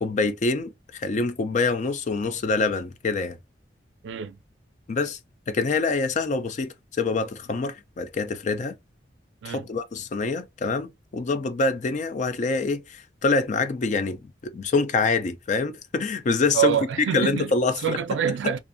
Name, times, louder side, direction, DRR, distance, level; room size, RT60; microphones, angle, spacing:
voice 1, 0.0-3.4 4.9-5.2 5.5-8.7 9.4-16.8 17.1-18.0 18.4-18.5, left 4 dB, 45° left, 0.4 m, -25 dB
voice 2, 4.0-4.4 9.4-9.7 16.5-17.5 17.8-18.6, right 9 dB, 85° right, 0.3 m, -25 dB
2.6 x 2.4 x 2.5 m
head